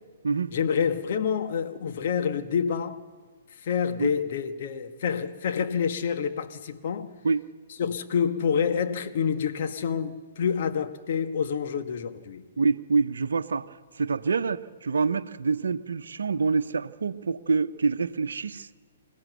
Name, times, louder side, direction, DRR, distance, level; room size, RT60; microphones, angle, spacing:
voice 1, 0.5-3.0 3.6-7.1 7.8-12.4, left 7 dB, 50° left, 1.5 m, -27 dB
voice 2, 12.6-13.7 13.9-18.7, right 4 dB, 70° right, 0.9 m, -26 dB
27.0 x 16.5 x 6.8 m
figure-of-eight pair, 125°, 0 cm